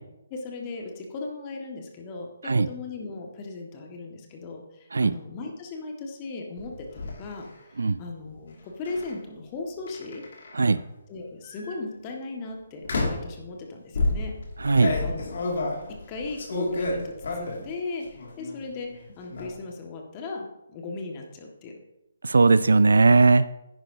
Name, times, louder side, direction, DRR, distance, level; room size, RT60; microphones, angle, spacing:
voice 1, 0.3-7.5 7.7-10.2 11.1-14.3 15.0-15.4 15.9-21.8, left 3 dB, 25° left, 1 dB, 1.7 m, -37 dB
sound 1, 6.6-7.1 8.9-9.1 9.9-10.7 11.4-11.7 12.8-13.3 13.9-17.7 18.1-18.6 18.9-19.5, left 2 dB, 60° left, 2.3 m, -30 dB
voice 2, 14.6-15.0 22.2-23.5, right 3 dB, 70° right, 15 dB, 0.4 m, -18 dB
10.5 x 9.6 x 2.8 m, 0.90 s
figure-of-eight pair, 140°, 0 cm